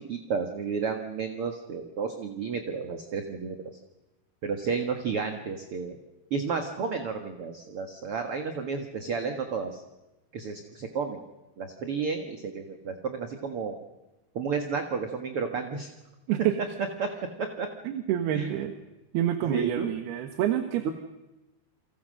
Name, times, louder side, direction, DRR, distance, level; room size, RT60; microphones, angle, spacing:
voice 1, 0.1-3.6 4.4-6.0 6.3-9.8 10.3-11.2 11.6-13.8 14.3-15.9 17.0-17.1 17.4-17.7 18.3-18.5 19.5-19.9 20.8-20.9, right 5 dB, 50° right, 5 dB, 2.0 m, -32 dB
voice 2, 17.9-18.7 19.1-20.9, right 11 dB, 80° right, 7 dB, 3.3 m, -27 dB
29.0 x 25.5 x 6.5 m, 1.0 s
omnidirectional pair, 4.5 m